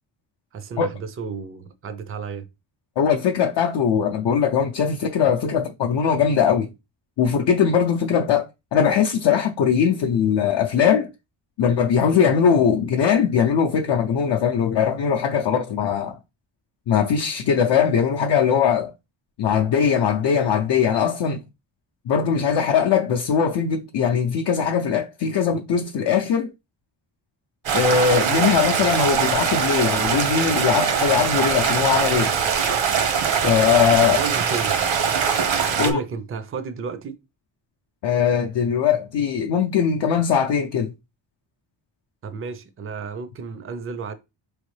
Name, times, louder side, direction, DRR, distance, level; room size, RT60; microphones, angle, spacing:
voice 1, 0.5-2.5 34.0-34.8 35.7-37.2 42.2-44.1, right 5 dB, 30° right, 0.4 m, -32 dB
voice 2, 3.0-6.7 7.2-8.5 8.7-11.1 11.6-16.2 16.9-18.9 19.4-21.4 22.1-26.5 27.7-32.3 33.4-34.2 35.8-36.0 38.0-40.9, left 7 dB, 65° left, 0.6 m, -20 dB
Stream, 27.7-35.9, right 7 dB, 75° right, 0.9 m, -22 dB
4.4 x 3.2 x 3.2 m
wide cardioid pair, 165°, 46 cm